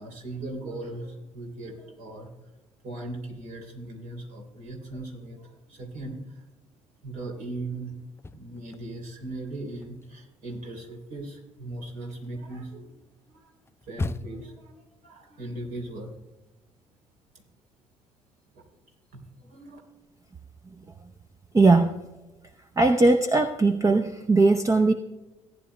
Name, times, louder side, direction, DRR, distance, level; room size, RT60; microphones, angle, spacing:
voice 1, 0.0-2.5 2.8-6.4 7.0-7.9 8.3-13.0 13.3-13.5 13.8-16.1 17.3-17.4 18.5-18.6 19.1-19.8, right 2 dB, 60° right, 1 dB, 3.2 m, -38 dB
sound 1, 8.0-9.2 9.5-14.6, left 2 dB, 15° left, 0.4 m, -39 dB
voice 2, 21.5-21.9 22.8-24.9, right 3 dB, 20° right, 6 dB, 0.7 m, -19 dB
18.0 x 10.0 x 2.2 m, 1.1 s
figure-of-eight pair, 50°, 16 cm